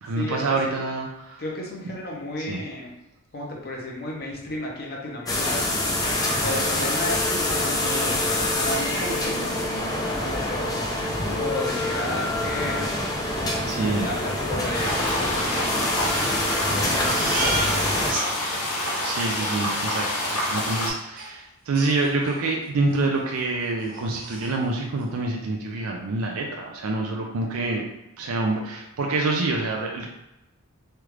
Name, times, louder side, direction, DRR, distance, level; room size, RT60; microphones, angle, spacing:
voice 1, 0.0-1.4 2.4-2.6 6.5-6.6 13.7-14.1 19.0-27.8 28.2-30.1, right 3 dB, 70° right, 0 dB, 0.4 m, -27 dB
voice 2, 1.4-2.9 3.3-5.7 6.4-12.9 13.6-16.1 16.7-17.8, left 2 dB, 45° left, -2 dB, 0.7 m, -33 dB
sound 1, 5.3-18.1, left 1 dB, 15° left, 0.4 m, -26 dB
sound 2, 14.7-20.9, left 1 dB, 85° left, 1.1 m, -27 dB
Crying sobbing, 17.1-18.2 18.6-18.7 19.0-19.4 21.2-21.3 21.7-22.5 22.9-23.1 23.4-23.5 23.8-24.5, right 2 dB, 40° right, 0.7 m, -32 dB
3.3 x 2.4 x 3.1 m, 0.89 s
head